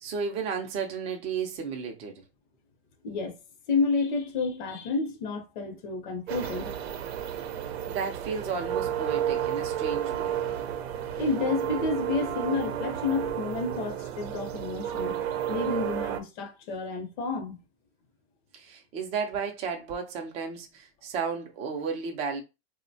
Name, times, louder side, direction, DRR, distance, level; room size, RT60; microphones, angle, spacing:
voice 1, 0.0-2.2 7.9-10.4 18.5-22.4, right 5 dB, 20° right, 0.4 m, -33 dB
voice 2, 3.0-3.4 3.7-6.8 11.2-15.2 15.5-17.6, left 4 dB, 50° left, 0.7 m, -30 dB
sound 1, 6.3-16.2, right 10 dB, 85° right, 0.6 m, -32 dB
2.7 x 2.1 x 2.7 m
supercardioid pair, 160°, 31 cm